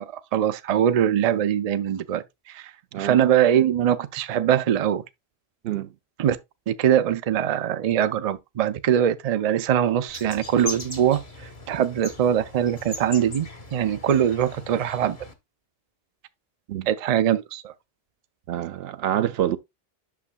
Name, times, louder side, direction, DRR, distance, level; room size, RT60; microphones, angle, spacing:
voice 1, 0.0-2.7 3.0-5.0 6.2-6.4 6.7-11.2 11.7-15.2 16.9-17.7, right 10 dB, 50° right, 0.5 m, -22 dB
sound 1, 10.1-15.3, left 4 dB, 35° left, 1.1 m, -39 dB
voice 2, 18.5-19.6, right 11 dB, 75° right, 0.8 m, -26 dB
8.5 x 6.3 x 2.2 m
omnidirectional pair, 1.0 m